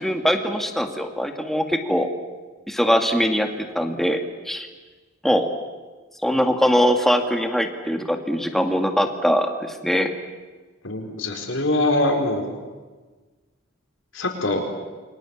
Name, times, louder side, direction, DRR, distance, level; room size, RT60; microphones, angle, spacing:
voice 1, 0.0-2.1 2.7-4.2 4.5-4.7 5.2-5.5 6.2-10.1, equal, ahead, 5 dB, 2.0 m, -22 dB
voice 2, 10.8-12.5 14.1-14.6, left 2 dB, 70° left, 3 dB, 4.6 m, -23 dB
29.5 x 24.0 x 7.2 m, 1.3 s
head